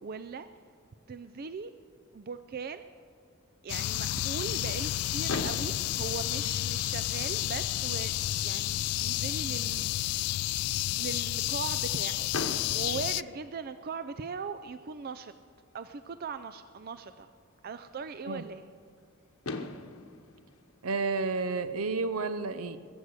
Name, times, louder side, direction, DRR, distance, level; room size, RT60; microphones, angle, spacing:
voice 1, 0.0-0.5 1.1-1.7 2.1-2.9 3.6-8.1 8.4-10.3 11.0-12.3 12.7-15.3 15.7-17.3 17.6-18.6, right 5 dB, 45° right, 11 dB, 0.4 m, -39 dB
sound 1, 3.7-13.2, left 14 dB, 90° left, 0.3 m, -31 dB
Fireworks, 5.3-7.3 8.1-8.2 8.4-8.6 8.9-9.0 12.3-14.2 15.9-16.0 19.0-19.1 19.4-21.7, left 3 dB, 70° left, 1.1 m, -40 dB
voice 2, 20.8-22.8, right 4 dB, 80° right, 11 dB, 0.7 m, -31 dB
21.0 x 8.1 x 6.4 m, 2.4 s
head